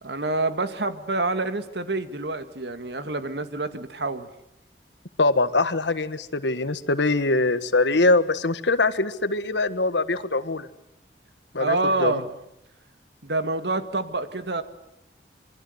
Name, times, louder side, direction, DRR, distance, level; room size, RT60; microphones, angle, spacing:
voice 1, 0.0-4.3 11.6-12.3 13.2-14.6, right 2 dB, 75° right, 10 dB, 2.1 m, -27 dB
voice 2, 5.2-10.7 11.5-12.2, left 3 dB, 85° left, 13 dB, 1.6 m, -23 dB
26.5 x 24.0 x 8.1 m, 0.80 s
head